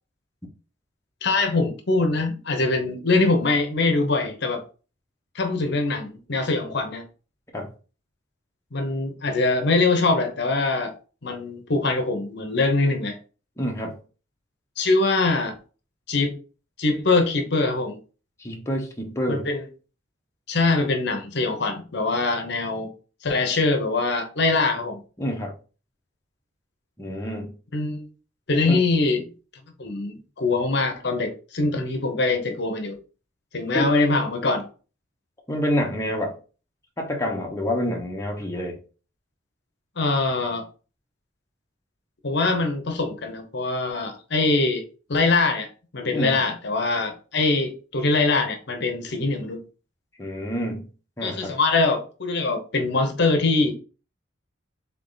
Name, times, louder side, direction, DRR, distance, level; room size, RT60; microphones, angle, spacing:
voice 1, 1.2-4.6 5.3-7.0 8.7-11.0 11.2-13.2 14.8-15.6 16.1-16.3 16.8-18.0 19.3-19.6 20.5-22.9 23.2-25.0 27.7-28.1 28.5-29.2 29.8-33.0 33.5-34.7 40.0-40.7 42.2-45.7 45.9-49.6 51.2-53.7, left 3 dB, 55° left, 0.8 m, -23 dB
voice 2, 13.6-14.0 18.4-19.5 25.2-25.5 27.0-27.5 28.6-28.8 33.7-33.9 35.5-36.3 37.0-38.8 46.1-46.4 50.2-50.9 51.2-51.5, equal, 15° left, 0.7 m, -27 dB
3.8 x 3.5 x 3.9 m
head